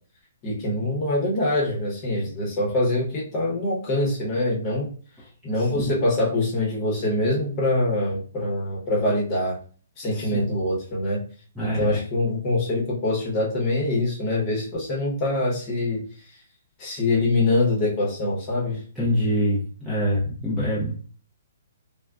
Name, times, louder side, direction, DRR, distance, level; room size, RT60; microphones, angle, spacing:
voice 1, 0.4-4.9 5.4-9.6 10.0-11.2 11.6-16.0 16.8-18.8, left 2 dB, 20° left, -3 dB, 0.9 m, -24 dB
voice 2, 10.1-10.4 11.6-12.0 19.0-20.9, equal, 5° right, -9 dB, 0.5 m, -25 dB
3.5 x 2.1 x 2.3 m, 0.41 s
hypercardioid pair, 170°, 0 cm